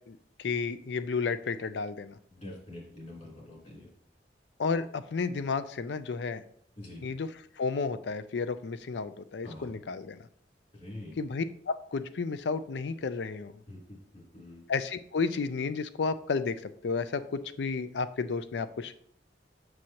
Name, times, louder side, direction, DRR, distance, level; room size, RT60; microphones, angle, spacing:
voice 1, 0.1-2.2 4.6-6.4 7.0-7.3 7.6-10.2 11.2-13.5 14.7-18.9, left 4 dB, 75° left, 12 dB, 0.4 m, -32 dB
voice 2, 2.3-3.9 6.8-7.1 9.4-9.7 10.7-11.1 13.7-14.6, left 1 dB, 45° left, -4 dB, 3.3 m, -45 dB
7.8 x 6.3 x 2.9 m, 0.64 s
head